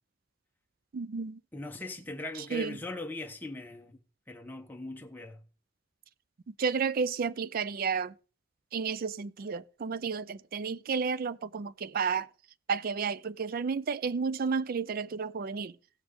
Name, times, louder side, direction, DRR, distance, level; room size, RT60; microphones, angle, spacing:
voice 1, 0.9-1.4 2.5-2.8 6.5-8.1 8.7-12.3 12.7-15.8, right 5 dB, 45° right, 0.4 m, -32 dB
voice 2, 1.5-4.0 4.3-5.4, left 2 dB, 10° left, 0.9 m, -40 dB
16.0 x 6.1 x 3.6 m
head